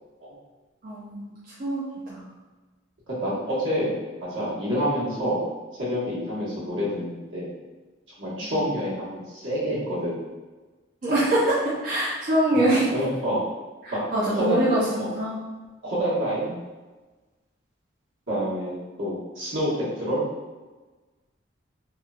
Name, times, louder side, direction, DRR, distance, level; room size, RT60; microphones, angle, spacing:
voice 1, 0.8-2.3 8.4-8.7 11.0-12.9 13.8-15.4, right 1 dB, 45° right, -9 dB, 0.4 m, -24 dB
voice 2, 3.1-4.0 4.2-5.5 5.8-7.5 8.2-10.2 12.9-13.4 13.9-14.0 14.3-14.7 15.0-15.1 15.8-16.6 18.3-20.2, equal, 75° right, -9 dB, 1.2 m, -27 dB
2.9 x 2.2 x 2.4 m, 1.2 s
head